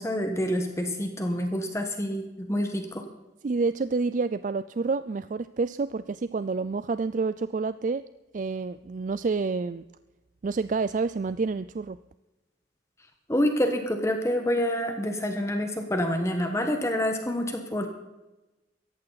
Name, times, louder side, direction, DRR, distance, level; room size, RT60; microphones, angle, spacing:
voice 1, 0.0-3.0 13.3-17.9, equal, 15° left, 5 dB, 1.4 m, -27 dB
voice 2, 3.4-8.0 8.3-9.8 10.4-12.0, right 4 dB, 45° right, 14 dB, 0.4 m, -28 dB
17.5 x 14.5 x 4.1 m, 1.0 s
head